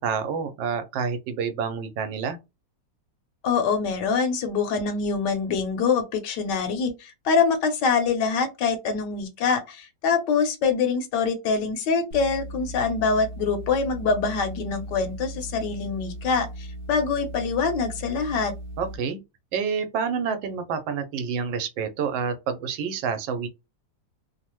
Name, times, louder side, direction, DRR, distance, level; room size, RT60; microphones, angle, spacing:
voice 1, 0.0-2.4 18.8-19.2 19.5-23.5, right 6 dB, 80° right, 1.3 m, -28 dB
voice 2, 3.4-18.5, left 5 dB, 75° left, 1.3 m, -24 dB
sound 1, 12.1-19.0, right 1 dB, 55° right, 0.9 m, -37 dB
3.2 x 2.0 x 2.9 m
omnidirectional pair, 2.0 m